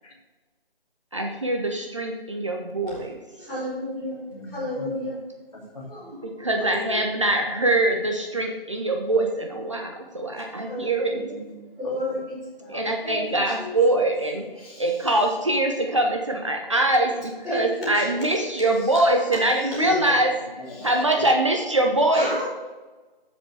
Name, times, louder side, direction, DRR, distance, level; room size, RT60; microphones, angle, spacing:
voice 1, 1.1-3.2 6.2-11.1 12.7-20.3 20.8-22.4, right 1 dB, 30° right, 2 dB, 0.7 m, -23 dB
voice 2, 3.4-4.2 4.5-5.2 5.9-6.3 6.7-6.9 10.7-11.2 11.8-12.3 12.6-12.7 13.0-13.2 17.5-17.9 20.8-20.9 22.1-22.5, left 1 dB, ahead, -20 dB, 0.9 m, -31 dB
voice 3, 4.2-5.1 5.5-6.1 11.1-12.2 12.7-12.8 19.8-20.1 20.6-21.3, left 1 dB, 40° left, -3 dB, 2.5 m, -38 dB
7.2 x 7.0 x 4.8 m, 1.2 s
figure-of-eight pair, 170°, 30 cm